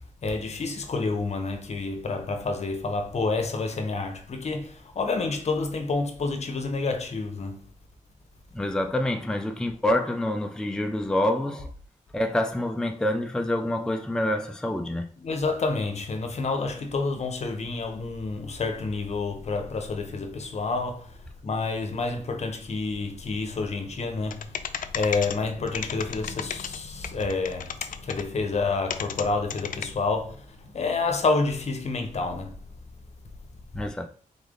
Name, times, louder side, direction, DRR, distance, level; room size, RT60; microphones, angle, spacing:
voice 1, 0.2-7.7 15.2-21.2 21.4-32.6, left 3 dB, 55° left, 0.9 m, -29 dB
voice 2, 8.5-11.7 12.1-15.1 33.7-34.1, left 1 dB, 5° left, 0.4 m, -27 dB
sound 1, 24.3-25.4 25.7-26.8 27.0-28.2 28.9-29.2 29.5-29.8, left 8 dB, 85° left, 0.4 m, -32 dB
4.0 x 3.4 x 3.7 m
wide cardioid pair, 110°, 13 cm